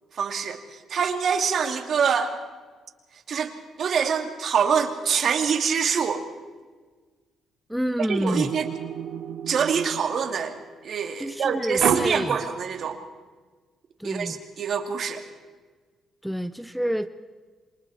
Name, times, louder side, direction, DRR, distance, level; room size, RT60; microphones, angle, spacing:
voice 1, 0.1-2.3 3.3-3.5 3.8-6.2 8.1-8.7 9.5-13.0 14.0-15.2, right 6 dB, 60° right, 5 dB, 2.6 m, -25 dB
voice 2, 7.7-8.5 11.2-12.4 14.0-14.4 16.2-17.1, equal, ahead, 10 dB, 0.8 m, -28 dB
sound 1, 8.3-10.6 11.8-12.9, right 8 dB, 75° right, 1.9 m, -30 dB
27.0 x 24.0 x 4.3 m, 1.4 s
cardioid pair, 90°, 0 cm